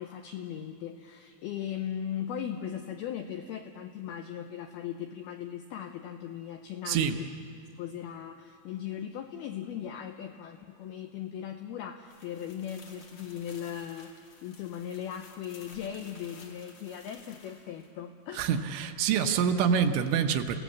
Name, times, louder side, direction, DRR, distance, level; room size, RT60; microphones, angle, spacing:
voice 1, 0.0-7.1 7.8-18.6, left 9 dB, 85° left, 6 dB, 2.2 m, -38 dB
voice 2, 6.9-7.2 18.3-20.6, right 7 dB, 75° right, 6 dB, 3.0 m, -26 dB
sound 1, 12.1-17.9, left 4 dB, 45° left, 3.0 m, -54 dB
29.5 x 16.5 x 7.3 m, 2.3 s
omnidirectional pair, 5.5 m